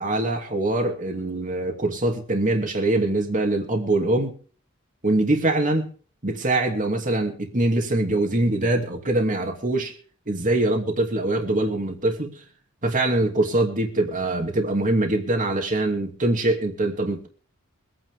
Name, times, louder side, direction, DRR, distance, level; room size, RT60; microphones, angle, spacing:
voice 1, 0.0-4.3 5.0-5.9 6.2-9.9 10.3-12.3 12.8-17.3, right 2 dB, 40° right, 2.7 m, -23 dB
24.5 x 9.6 x 3.7 m
head